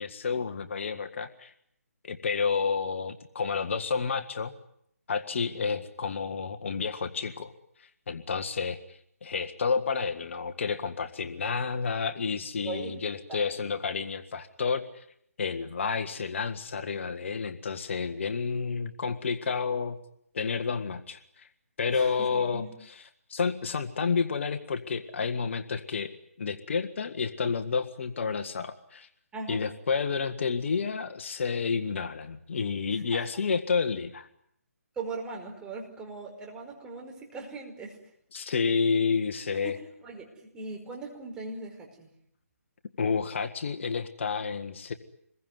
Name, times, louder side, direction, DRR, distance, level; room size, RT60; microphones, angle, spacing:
voice 1, 0.0-1.5 2.0-4.5 5.1-7.5 7.8-15.0 15.4-20.0 20.3-21.5 21.8-23.0 23.3-26.1 26.4-29.1 29.5-34.3 38.3-39.8 43.0-44.9, left 5 dB, 55° left, 8 dB, 1.7 m, -30 dB
voice 2, 12.6-13.0 13.3-13.5 21.9-22.7 29.3-29.6 32.9-33.2 35.0-38.0 39.6-39.7 40.0-42.1, right 3 dB, 10° right, 1 dB, 5.1 m, -39 dB
27.0 x 22.0 x 9.6 m, 0.72 s
figure-of-eight pair, 150°, 8 cm